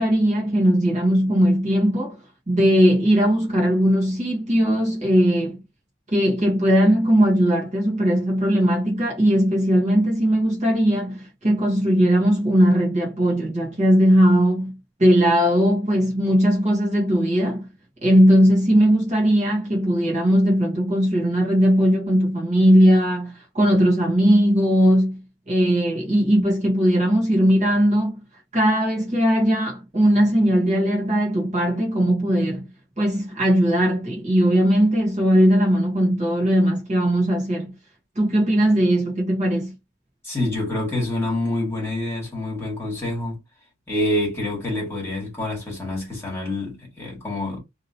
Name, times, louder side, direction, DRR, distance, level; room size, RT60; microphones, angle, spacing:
voice 1, 0.0-2.2 2.5-5.6 6.1-17.7 18.0-28.2 28.5-32.6 33.0-37.7 38.1-39.7, equal, 35° right, 1.3 m, -19 dB
voice 2, 40.2-43.4 43.9-47.6, left 1 dB, 10° left, 1.6 m, -26 dB
2.9 x 2.8 x 2.8 m
head